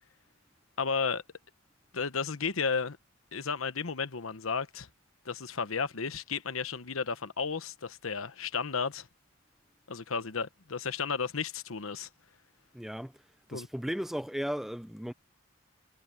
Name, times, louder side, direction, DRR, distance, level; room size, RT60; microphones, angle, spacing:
voice 1, 0.8-1.2 1.9-3.0 3.3-4.9 5.2-9.1 9.9-12.1 13.5-13.7, left 5 dB, 90° left, 1.1 m, -33 dB
voice 2, 12.7-13.1 13.5-15.1, equal, ahead, 0.4 m, -35 dB
head